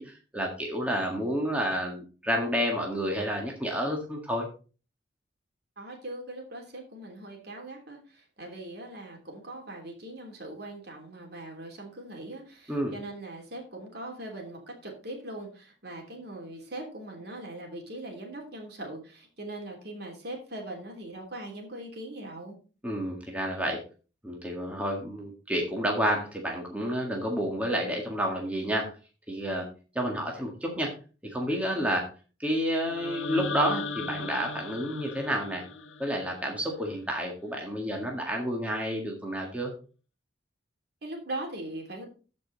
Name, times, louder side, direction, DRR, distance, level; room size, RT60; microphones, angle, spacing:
voice 1, 0.0-4.5 12.7-12.9 22.8-23.8 24.2-28.9 29.3-29.7 30.0-30.9 31.2-32.1 32.4-35.6 36.0-39.7, equal, 5° right, 0 dB, 1.8 m, -30 dB
voice 2, 5.8-22.6 41.0-42.0, right 1 dB, 55° right, 1 dB, 3.1 m, -40 dB
sound 1, 32.8-36.9, left 3 dB, 75° left, 1.2 m, -37 dB
14.5 x 5.3 x 4.0 m, 0.35 s
head